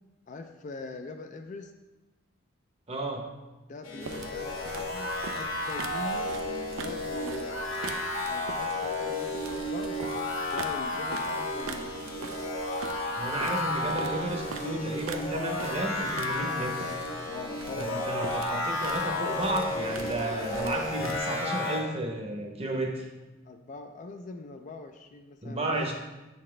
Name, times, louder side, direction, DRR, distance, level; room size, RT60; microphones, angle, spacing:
voice 1, 0.3-1.7 3.7-6.3 6.8-7.5 8.3-10.0 10.5-12.0 17.2-18.1 23.4-25.9, left 3 dB, 40° left, 6 dB, 0.3 m, -42 dB
voice 2, 2.9-3.3 13.2-17.0 17.8-23.1 25.4-25.9, right 1 dB, 30° right, 2 dB, 0.7 m, -32 dB
sound 1, 3.8-21.8, left 2 dB, 80° left, 1.2 m, -32 dB
sound 2, 4.0-21.2, right 4 dB, 90° right, 0.4 m, -43 dB
7.3 x 4.1 x 3.2 m, 1.1 s
head